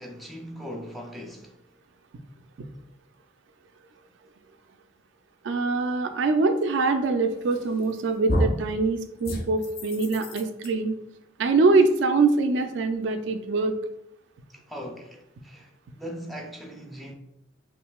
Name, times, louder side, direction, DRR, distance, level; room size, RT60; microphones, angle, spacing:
voice 1, 0.0-1.6 14.5-15.7 16.0-17.1, equal, ahead, 0.5 m, -39 dB
voice 2, 5.4-11.0 11.4-13.8, right 3 dB, 75° right, 0.4 m, -23 dB
sound 1, 7.5-7.9 8.3-8.7 9.2-10.7, equal, 55° left, 0.6 m, -28 dB
5.5 x 2.6 x 2.3 m
head